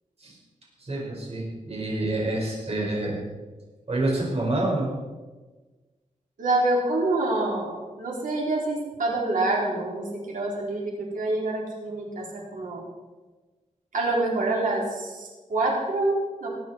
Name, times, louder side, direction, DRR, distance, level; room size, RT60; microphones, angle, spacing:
voice 1, 0.8-3.2 3.9-4.9, right 2 dB, 50° right, -2 dB, 5.4 m, -27 dB
voice 2, 6.4-12.8 13.9-16.5, right 2 dB, 90° right, -2 dB, 4.1 m, -26 dB
20.5 x 9.1 x 4.6 m, 1.3 s
wide cardioid pair, 85°, 13 cm